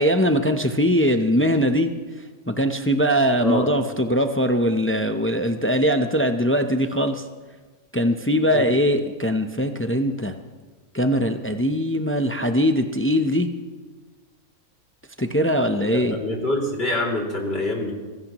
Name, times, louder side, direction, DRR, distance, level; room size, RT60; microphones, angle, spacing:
voice 1, 0.0-1.9 2.5-7.2 7.9-10.3 10.9-13.5 15.2-16.2, equal, 20° left, 6 dB, 0.3 m, -21 dB
voice 2, 15.9-17.9, left 1 dB, 40° left, -2 dB, 3.1 m, -25 dB
24.5 x 17.0 x 3.0 m, 1.4 s
omnidirectional pair, 1.5 m